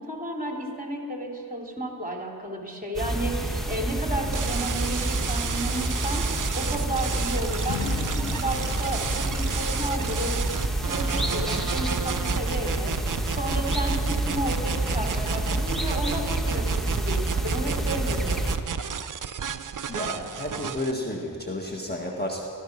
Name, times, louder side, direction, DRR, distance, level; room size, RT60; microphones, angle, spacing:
voice 1, 0.0-6.2 6.5-10.4 10.9-12.9 13.3-18.5, right 1 dB, 20° right, 0 dB, 3.2 m, -32 dB
sound 1, 2.9-18.6, right 1 dB, ahead, 1.8 m, -28 dB
sound 2, 4.3-20.9, right 7 dB, 45° right, 0.6 m, -32 dB
Strum, 7.7-12.9, left 9 dB, 70° left, 0.9 m, -41 dB
voice 2, 19.9-22.4, left 1 dB, 20° left, -1 dB, 1.7 m, -31 dB
16.5 x 14.0 x 6.0 m, 2.3 s
wide cardioid pair, 65°, 45 cm